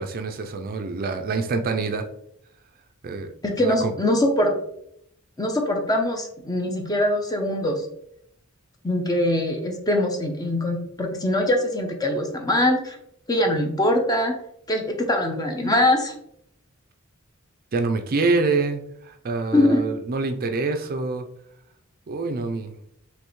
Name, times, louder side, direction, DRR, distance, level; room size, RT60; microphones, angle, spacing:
voice 1, 0.0-2.0 3.0-3.3 3.6-3.9 17.7-21.3 22.1-22.7, right 3 dB, 45° right, 6 dB, 0.4 m, -26 dB
voice 2, 3.4-4.5 5.4-7.8 8.8-13.0 13.3-14.3 14.7-16.1 19.5-19.8, left 1 dB, 20° left, 3 dB, 0.7 m, -22 dB
5.4 x 3.2 x 3.1 m, 0.72 s
head